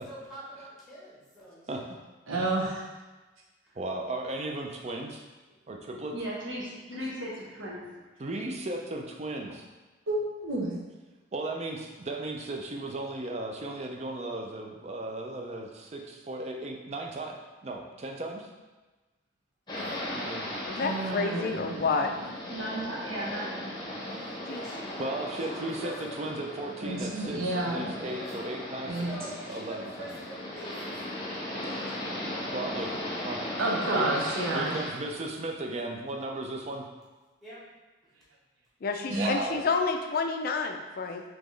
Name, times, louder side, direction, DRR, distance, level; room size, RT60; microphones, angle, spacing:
voice 1, 0.0-1.9 20.8-21.2 24.1-26.3 28.2-28.3 28.8-32.7 37.4-37.7, equal, ahead, -8 dB, 1.1 m, -46 dB
voice 2, 2.3-2.9 10.1-10.7 20.7-22.2 26.8-27.8 28.8-29.1 33.6-34.8 39.1-39.3, right 2 dB, 85° right, -3 dB, 0.9 m, -30 dB
voice 3, 3.8-5.2 5.7-6.1 8.2-9.6 11.3-17.4 17.6-18.5 20.1-20.5 25.0-29.1 29.5-30.1 32.5-32.9 33.2-33.4 33.9-34.1 34.5-36.8 39.1-39.6, right 2 dB, 35° right, 2 dB, 0.4 m, -35 dB
voice 4, 6.1-7.9 22.5-23.6 23.8-24.2, right 1 dB, 65° right, -5 dB, 1.1 m, -36 dB
sound 1, 19.7-34.9, left 1 dB, 20° left, 0.8 m, -37 dB
voice 5, 20.6-22.1 24.5-24.6 38.8-41.2, left 4 dB, 45° left, 5 dB, 0.3 m, -29 dB
4.1 x 2.9 x 3.2 m, 1.2 s
head